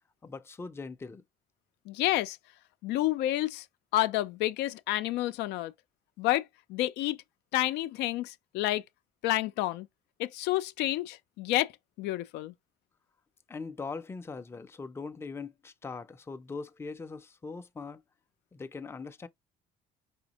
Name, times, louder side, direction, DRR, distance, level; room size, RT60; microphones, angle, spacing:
voice 1, 0.2-1.2 13.5-18.0 18.5-19.3, left 4 dB, 15° left, 0.4 m, -41 dB
voice 2, 1.9-2.4 2.8-3.7 3.9-5.7 6.2-7.2 7.5-8.8 9.2-9.9 10.2-11.7 12.0-12.5, left 15 dB, 85° left, 0.5 m, -29 dB
5.0 x 3.4 x 2.9 m
cardioid pair, 110°, 17 cm